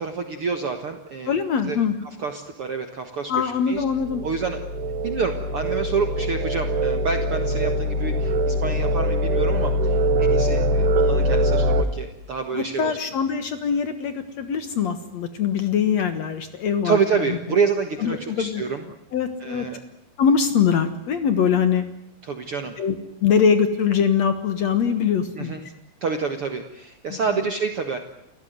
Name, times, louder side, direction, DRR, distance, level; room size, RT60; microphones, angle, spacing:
voice 1, 0.0-1.3 1.6-1.8 2.2-3.8 4.2-4.6 5.0-13.0 16.8-18.8 19.4-19.8 22.2-22.8 25.3-25.6 26.0-28.0, right 5 dB, 90° right, 6 dB, 1.2 m, -27 dB
voice 2, 1.3-1.9 3.3-4.2 12.5-17.0 17.3-17.4 18.0-18.6 19.1-19.7 20.2-21.8 22.8-23.0 23.2-25.6 27.1-27.2, left 7 dB, 70° left, 10 dB, 1.6 m, -22 dB
sound 1, 3.8-11.8, equal, 70° right, 3.7 m, -23 dB
29.5 x 17.0 x 9.4 m, 0.81 s
omnidirectional pair, 5.1 m